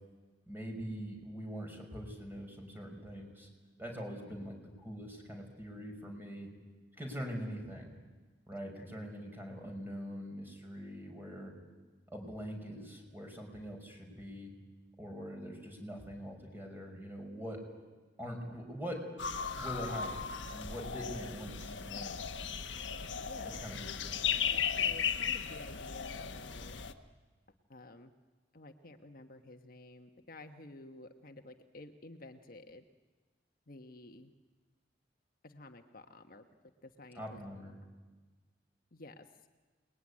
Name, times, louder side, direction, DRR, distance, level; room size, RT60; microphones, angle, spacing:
voice 1, 0.5-3.5 3.8-4.6 4.8-6.5 7.0-7.9 8.5-11.5 12.1-14.5 15.0-17.6 18.2-19.0 19.6-22.2 23.4-24.1 37.2-37.7, equal, 10° right, 2 dB, 5.4 m, -43 dB
sound 1, 19.2-26.9, left 7 dB, 80° left, 1.3 m, -36 dB
voice 2, 23.2-24.0 24.5-26.8 27.7-28.1 28.5-32.8 33.7-34.3 35.4-37.4 38.9-39.5, left 2 dB, 50° left, 5 dB, 1.3 m, -52 dB
28.5 x 20.5 x 9.9 m, 1.3 s
head